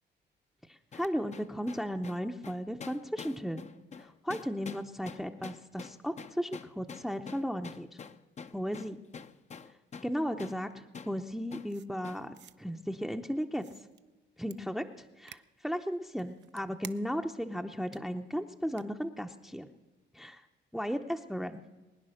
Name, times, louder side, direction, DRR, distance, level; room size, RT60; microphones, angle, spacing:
voice 1, 0.7-3.7 4.0-7.9 8.5-9.0 10.0-13.6 14.4-19.7 20.1-20.4 20.7-21.6, equal, ahead, 5 dB, 0.7 m, -35 dB
sound 1, 0.9-10.1 10.4-10.6 10.9-11.2 11.5-11.7 12.0-12.3, left 6 dB, 35° left, 0.7 m, -46 dB
sound 2, 11.7-12.5 13.5-14.0 14.5-14.6 15.3-15.4 16.1-17.3 17.9-18.0 18.7-18.8, right 11 dB, 65° right, 0.6 m, -51 dB
21.5 x 9.6 x 6.5 m, 1.1 s
cardioid pair, 90°, 20 cm